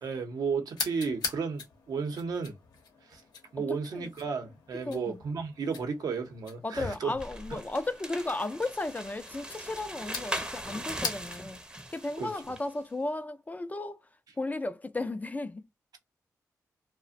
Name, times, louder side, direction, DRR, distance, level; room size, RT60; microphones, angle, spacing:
voice 1, 0.0-2.6 3.1-3.2 3.5-7.1 7.5-7.6 12.2-12.3, right 5 dB, 70° right, 0.7 m, -33 dB
sound 1, 0.7-11.6, left 5 dB, 80° left, 0.7 m, -43 dB
voice 2, 4.9-5.2 6.6-11.6 11.9-14.0 14.4-15.6, left 2 dB, 25° left, 0.4 m, -34 dB
sound 2, 7.2-12.7, right 1 dB, 15° right, 0.6 m, -40 dB
2.4 x 2.0 x 2.5 m
cardioid pair, 55°, 7 cm